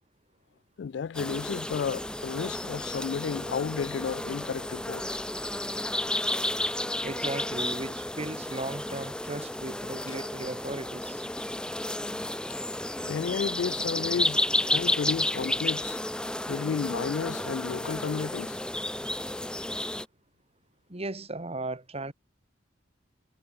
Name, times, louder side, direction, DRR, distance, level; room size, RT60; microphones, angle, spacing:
voice 1, 0.8-5.2 13.0-16.0 16.5-18.6, left 6 dB, 65° left, 0.4 m, -32 dB
sound 1, 1.1-20.1, left 1 dB, 5° left, 0.6 m, -32 dB
voice 2, 7.0-11.2 20.9-22.1, right 2 dB, 35° right, 2.1 m, -36 dB
head